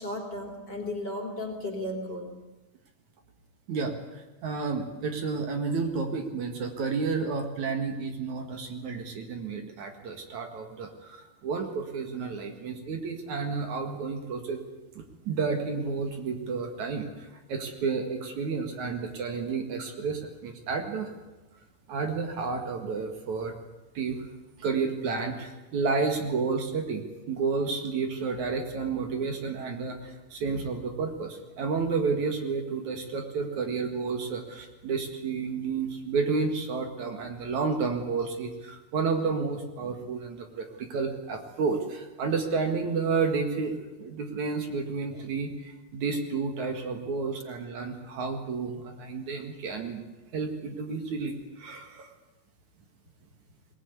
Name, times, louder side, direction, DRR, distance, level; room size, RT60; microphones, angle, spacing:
voice 1, 0.0-2.3, left 1 dB, 30° left, 2 dB, 3.5 m, -34 dB
voice 2, 3.7-11.2 11.4-14.6 15.0-17.1 17.5-21.1 21.9-23.5 23.9-24.2 24.6-50.0 50.3-52.1, right 4 dB, 60° right, 4 dB, 3.2 m, -31 dB
21.5 x 19.0 x 9.7 m, 1.1 s
omnidirectional pair, 3.9 m